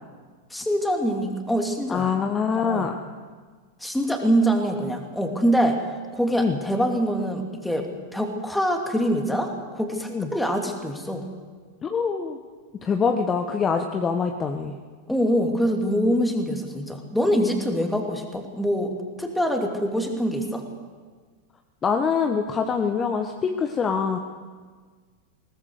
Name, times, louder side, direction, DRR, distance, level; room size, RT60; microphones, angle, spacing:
voice 1, 0.5-2.1 2.5-2.9 3.8-5.8 6.1-11.2 15.1-20.7, equal, 5° left, 3 dB, 2.8 m, -24 dB
voice 2, 1.9-2.9 6.4-6.6 10.1-10.3 11.8-12.4 12.8-14.7 21.8-24.2, left 6 dB, 20° left, 5 dB, 1.3 m, -24 dB
21.0 x 18.5 x 6.7 m, 1.5 s
figure-of-eight pair, 90°, 0 cm